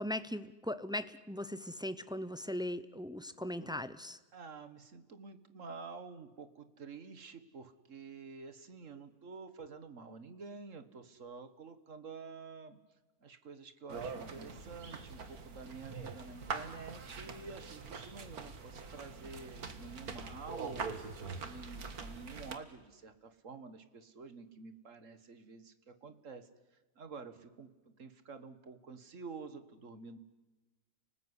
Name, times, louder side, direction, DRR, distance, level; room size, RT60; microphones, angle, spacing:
voice 1, 0.0-4.2, left 1 dB, 5° right, 13 dB, 0.5 m, -39 dB
voice 2, 4.3-12.8 13.2-26.5 27.0-30.2, right 4 dB, 55° right, 10 dB, 1.9 m, -49 dB
sound 1, 13.9-22.6, right 4 dB, 80° right, 2.2 m, -44 dB
30.0 x 19.5 x 9.8 m, 1.2 s
omnidirectional pair, 1.6 m